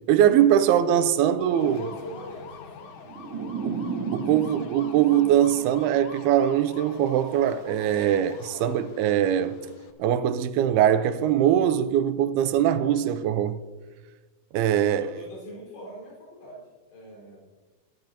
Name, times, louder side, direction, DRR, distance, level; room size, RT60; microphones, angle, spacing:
voice 1, 0.1-1.8 3.6-3.8 4.1-9.6 10.0-13.6 14.5-15.1, right 10 dB, 90° right, 2.6 m, -22 dB
voice 2, 1.4-2.9 3.2-4.9 14.9-17.4, equal, 90° left, 6.6 m, -43 dB
sound 1, 1.4-9.9, left 5 dB, 70° left, 1.7 m, -45 dB
sound 2, 3.1-6.3, right 5 dB, 65° right, 1.3 m, -34 dB
23.0 x 11.5 x 2.8 m
omnidirectional pair, 4.5 m